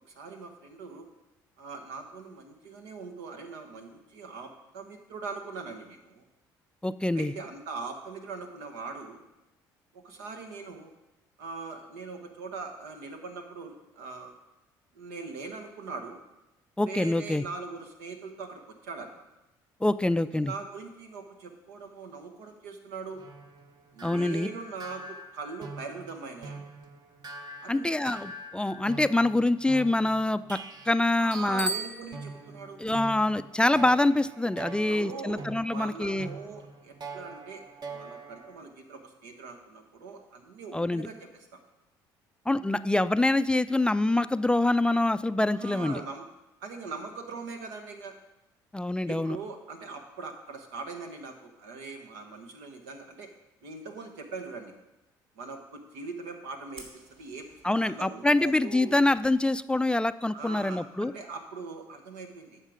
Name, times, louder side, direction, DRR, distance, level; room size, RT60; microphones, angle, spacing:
voice 1, 0.1-1.1 1.6-6.2 7.1-9.2 9.9-10.9 11.4-14.3 14.9-16.2 16.8-19.2 20.1-23.2 23.9-26.7 27.6-27.9 31.2-32.8 34.9-35.4 35.7-37.6 37.9-41.6 45.5-46.3 46.6-48.1 49.1-53.3 53.6-54.7 55.4-57.5 57.8-59.0 60.3-62.6, right 4 dB, 85° right, 5 dB, 1.3 m, -41 dB
voice 2, 6.8-7.3 16.8-17.4 19.8-20.5 24.0-24.5 27.7-30.6 30.9-31.7 32.8-36.3 40.7-41.1 42.5-46.0 48.7-49.4 57.6-61.1, left 2 dB, 10° left, 13 dB, 0.3 m, -25 dB
sound 1, 23.1-31.8 32.1-38.6, right 3 dB, 45° right, 1.0 m, -44 dB
Bicycle bell, 31.5-32.9, right 2 dB, 10° right, 1.1 m, -35 dB
Fire, 56.7-57.9, right 2 dB, 65° right, 3.0 m, -51 dB
9.9 x 6.5 x 5.0 m, 0.97 s
hypercardioid pair, 65°, 10 cm